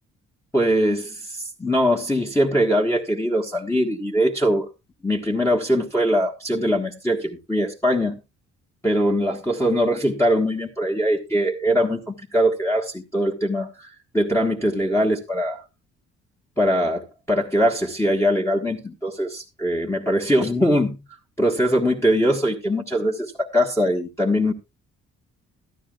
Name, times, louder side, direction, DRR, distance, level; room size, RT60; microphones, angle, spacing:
voice 1, 0.5-4.7 5.0-8.1 8.8-15.6 16.6-21.0 21.4-24.5, equal, 10° left, 0 dB, 1.4 m, -22 dB
13.5 x 12.5 x 2.4 m, 0.26 s
cardioid pair, 90°, 30 cm